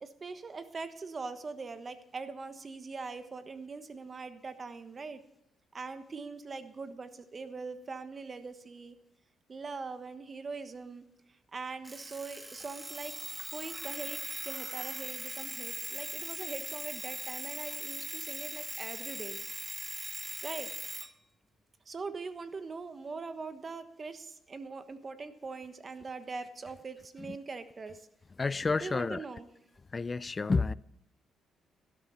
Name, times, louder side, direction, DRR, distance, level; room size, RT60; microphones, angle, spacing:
voice 1, 0.0-5.2 5.7-9.0 9.5-13.1 13.5-19.8 20.4-20.7 21.9-28.1 28.8-29.5, right 4 dB, 35° right, 1.3 m, -42 dB
Alarm, 11.8-21.1, right 1 dB, 15° right, 1.0 m, -40 dB
voice 2, 28.4-29.2 29.9-30.7, left 4 dB, 30° left, 0.4 m, -30 dB
12.5 x 12.5 x 4.2 m
cardioid pair, 90°, 0 cm